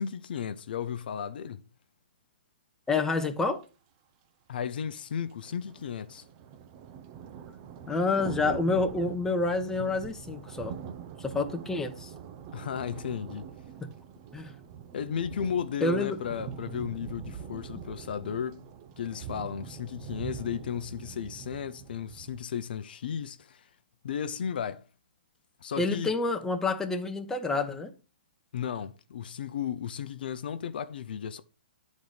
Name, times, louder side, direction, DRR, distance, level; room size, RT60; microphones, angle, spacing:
voice 1, 0.0-1.6 4.5-6.3 12.5-13.5 14.9-18.6 19.0-23.7 24.0-24.8 25.6-26.1 28.5-31.4, left 8 dB, 65° left, 0.6 m, -34 dB
voice 2, 2.9-3.6 7.9-10.8 11.2-12.1 14.3-14.5 15.8-16.2 25.8-27.9, left 3 dB, 10° left, 1.0 m, -28 dB
sound 1, 3.6-3.7 4.6-22.4, right 7 dB, 40° right, 0.8 m, -43 dB
10.5 x 4.2 x 5.0 m
hypercardioid pair, 125°, 5 cm